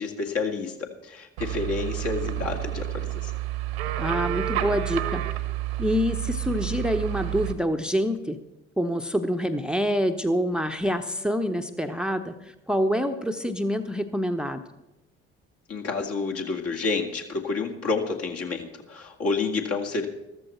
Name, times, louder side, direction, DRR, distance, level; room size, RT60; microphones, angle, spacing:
voice 1, 0.0-3.3 15.7-20.1, left 4 dB, 50° left, 3 dB, 2.2 m, -29 dB
sound 1, 1.4-7.5, right 14 dB, 75° right, 1.2 m, -30 dB
voice 2, 4.0-5.2 5.8-8.4 8.8-14.6, equal, 5° right, 8 dB, 0.9 m, -26 dB
14.0 x 14.0 x 4.4 m, 0.96 s
figure-of-eight pair, 50°, 31 cm